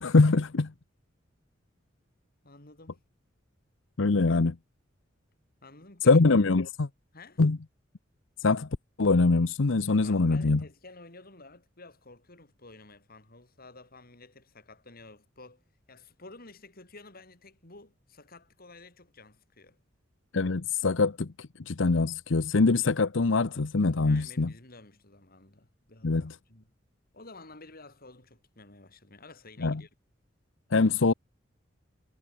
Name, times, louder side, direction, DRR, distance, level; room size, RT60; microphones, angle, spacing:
voice 1, 0.0-0.7 4.0-4.6 6.0-6.9 7.4-7.6 8.4-8.7 9.0-10.6 20.3-24.5 26.0-26.4 29.6-29.8 30.7-31.1, left 3 dB, 75° left, 0.8 m, -23 dB
voice 2, 2.4-3.0 5.6-6.2 7.1-7.4 10.0-15.6 15.9-19.8 24.0-26.7 27.1-29.9, left 3 dB, 50° left, 5.0 m, -51 dB
head